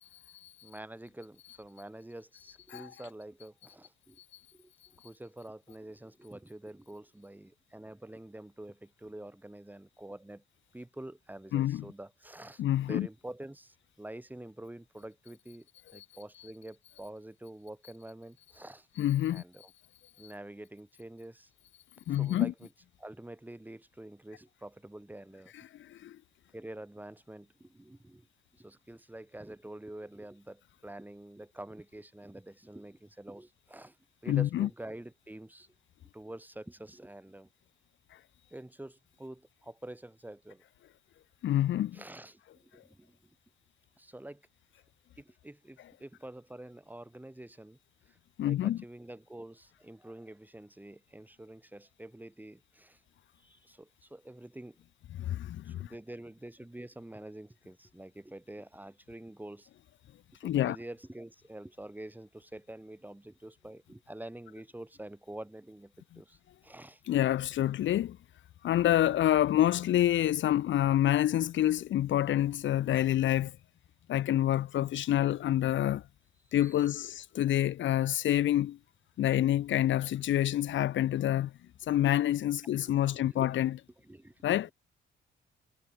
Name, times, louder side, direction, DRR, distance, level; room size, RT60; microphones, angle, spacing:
voice 1, 0.6-4.2 4.5-10.4 10.7-15.7 15.9-18.9 19.3-19.7 20.2-21.5 22.1-22.7 23.0-25.5 26.5-28.3 28.5-34.0 34.2-35.7 36.1-37.5 38.5-40.6 41.9-43.3 44.0-44.4 45.2-47.8 48.1-48.2 48.4-53.0 53.4-54.8 55.6-59.7 60.3-67.0 76.6-77.1 82.9-83.5 84.0-84.6, right 1 dB, 10° right, 6.8 m, -47 dB
voice 2, 11.5-11.8 12.6-13.1 16.0-16.1 19.0-19.4 22.1-22.5 25.8-26.2 34.3-34.7 41.4-42.0 48.4-48.8 55.2-55.9 60.4-60.8 67.1-68.2 68.6-73.6 74.1-76.0 76.5-78.8 79.2-81.5 81.9-83.7 84.4-84.7, left 12 dB, 70° left, 1.3 m, -27 dB
cardioid pair, 90°, 20 cm